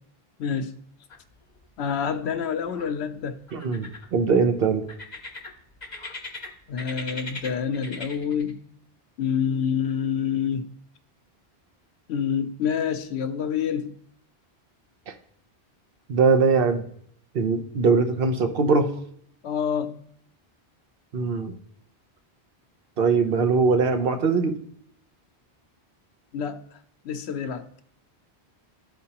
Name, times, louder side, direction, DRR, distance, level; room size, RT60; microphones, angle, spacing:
voice 1, 0.4-0.7 1.8-3.4 6.7-8.7 9.2-10.7 12.1-14.0 19.4-20.0 26.3-26.8 27.0-27.7, left 7 dB, 80° left, 0.9 m, -27 dB
sound 1, 1.1-1.7 1.9-2.9 3.5-4.3 4.9-6.5 6.8-8.5, left 3 dB, 45° left, 1.1 m, -39 dB
voice 2, 3.5-4.8 15.1-15.2 16.1-16.8 17.3-18.9 21.1-21.6 23.0-24.6, right 4 dB, 60° right, 0.9 m, -21 dB
13.0 x 4.4 x 2.9 m
omnidirectional pair, 1.1 m